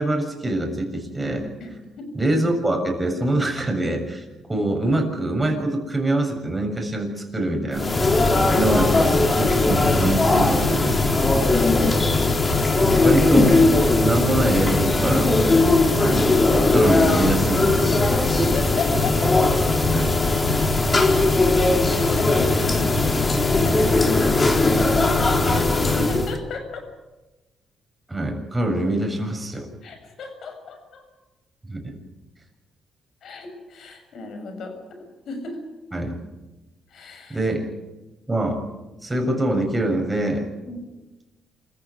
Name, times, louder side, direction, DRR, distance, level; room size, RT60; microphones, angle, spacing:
voice 1, 0.0-1.4 2.2-7.9 8.5-11.2 13.0-13.6 14.0-15.6 16.0-18.1 19.9-20.1 25.4-25.6 28.1-29.7 31.7-32.0 35.9-36.1 37.3-37.7 38.3-38.6 39.0-40.5, right 1 dB, 15° right, 3 dB, 7.0 m, -24 dB
sound 1, 7.7-26.4, left 2 dB, 25° left, 3.9 m, -19 dB
voice 2, 18.0-19.2 21.8-25.6 25.9-26.8 29.8-31.0 33.2-35.6 36.9-37.4 40.6-40.9, left 3 dB, 65° left, 6 dB, 7.1 m, -34 dB
28.0 x 15.5 x 9.8 m, 1.1 s
cardioid pair, 90°, 0 cm